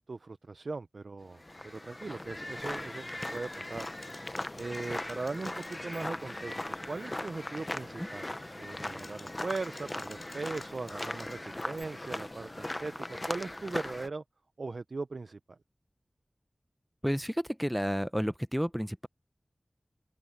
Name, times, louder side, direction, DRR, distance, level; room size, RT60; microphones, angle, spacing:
voice 1, 0.0-3.1 3.3-3.9 4.6-6.6 6.9-14.2 14.6-15.6, right 3 dB, 80° right, 0.5 m, -39 dB
sound 1, 1.3-14.1, left 1 dB, 30° left, 0.8 m, -39 dB
Typing, 3.2-6.4 6.7-7.1 7.4-7.8 8.6-11.8, left 2 dB, 55° left, 4.1 m, -55 dB
voice 2, 17.0-19.1, equal, ahead, 0.8 m, -31 dB
wide cardioid pair, 65°, 0 cm